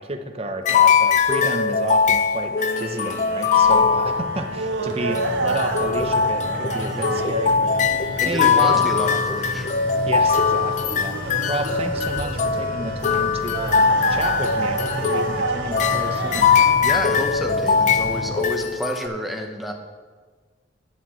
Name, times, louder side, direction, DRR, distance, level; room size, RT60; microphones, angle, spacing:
voice 1, 0.0-8.8 10.1-16.5, right 2 dB, 30° right, 6 dB, 0.7 m, -31 dB
sound 1, 0.6-4.7 5.1-19.1, left 6 dB, 40° left, 0.4 m, -21 dB
sound 2, 0.7-1.3 2.6-2.7 3.5-18.5, equal, 50° right, 1.3 m, -34 dB
sound 3, 2.6-16.8, right 3 dB, 70° right, 0.7 m, -31 dB
voice 2, 6.7-7.2 8.2-9.7 16.8-19.7, equal, ahead, 2 dB, 0.8 m, -30 dB
11.5 x 8.2 x 3.1 m, 1.5 s
head